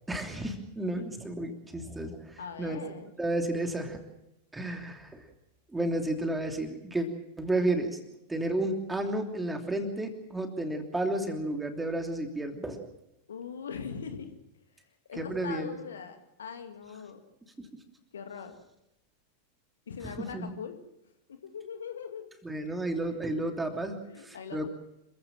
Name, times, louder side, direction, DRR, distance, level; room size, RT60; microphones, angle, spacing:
voice 1, 0.1-2.8 3.2-4.0 4.5-5.3 5.7-7.1 7.4-8.0 8.3-12.9 15.2-15.8 20.0-20.5 22.4-24.7, right 1 dB, 10° right, 4 dB, 3.0 m, -32 dB
voice 2, 2.4-3.1 13.3-14.3 15.1-17.2 18.1-18.5 19.9-20.8 21.3-22.3 23.0-23.1 24.0-24.7, left 6 dB, 65° left, 7 dB, 2.1 m, -41 dB
26.5 x 16.0 x 7.5 m, 0.86 s
figure-of-eight pair, 90°, 0 cm